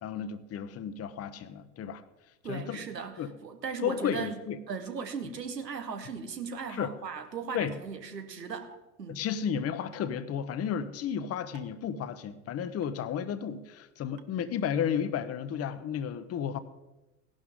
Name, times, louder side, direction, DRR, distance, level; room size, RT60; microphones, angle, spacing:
voice 1, 0.0-2.0 2.4-2.8 3.2-3.3 3.8-4.6 6.8-6.9 7.5-7.7 9.1-16.6, left 8 dB, 30° left, 1.0 m, -33 dB
voice 2, 2.4-4.4 4.7-8.7 9.0-9.2, right 5 dB, 90° right, 1.4 m, -37 dB
sound 1, 7.7-7.8 8.6-8.8 9.9-10.1 11.6-11.8 12.8-12.9 14.2-14.3, right 9 dB, 55° right, 1.2 m, -53 dB
17.0 x 11.5 x 3.7 m
hypercardioid pair, 80°, 48 cm